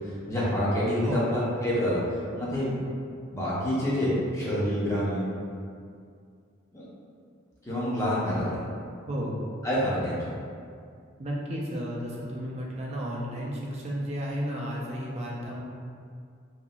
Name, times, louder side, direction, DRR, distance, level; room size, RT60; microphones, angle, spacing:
voice 1, 0.3-2.0 2.3-2.7 3.3-5.2 6.7-6.8 7.6-8.6 9.6-10.3, equal, 15° left, -8 dB, 0.6 m, -27 dB
voice 2, 9.1-9.4 11.2-15.6, equal, 30° right, -3 dB, 0.4 m, -33 dB
2.8 x 2.4 x 2.3 m, 2.3 s
head